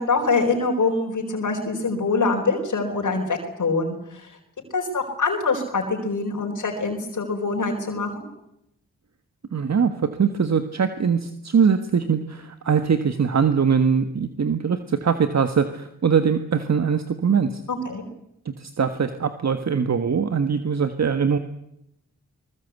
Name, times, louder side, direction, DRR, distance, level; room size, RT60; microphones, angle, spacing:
voice 1, 0.0-4.4 4.7-8.3 17.7-18.0, left 3 dB, 70° left, 1 dB, 4.5 m, -24 dB
voice 2, 9.5-17.6 18.6-21.4, right 6 dB, 55° right, 9 dB, 1.6 m, -22 dB
23.0 x 20.0 x 8.3 m, 0.80 s
cardioid pair, 45°, 32 cm